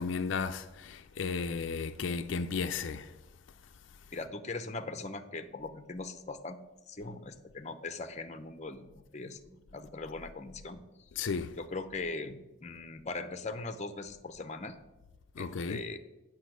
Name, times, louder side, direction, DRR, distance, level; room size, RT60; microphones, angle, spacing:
voice 1, 0.0-3.1 11.2-11.5 15.4-15.9, left 5 dB, 70° left, 0.4 m, -34 dB
voice 2, 4.1-6.6 6.9-10.9 11.6-14.8 15.4-16.0, left 3 dB, 35° left, 0.7 m, -40 dB
8.3 x 5.5 x 7.7 m
head